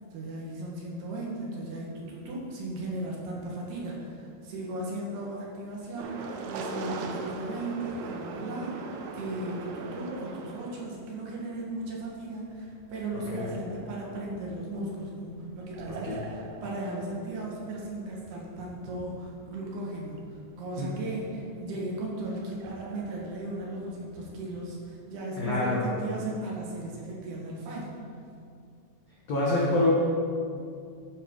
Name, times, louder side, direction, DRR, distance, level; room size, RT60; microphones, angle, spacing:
voice 1, 0.1-20.2 20.6-27.9, right 1 dB, 65° right, -3 dB, 3.2 m, -36 dB
sound 1, 6.0-10.9 11.7-25.0, right 3 dB, 90° right, 3.2 m, -42 dB
voice 2, 15.9-16.2 25.4-25.8 29.3-29.9, left 2 dB, 65° left, -6 dB, 1.6 m, -26 dB
13.5 x 9.2 x 3.8 m, 2.4 s
omnidirectional pair, 5.5 m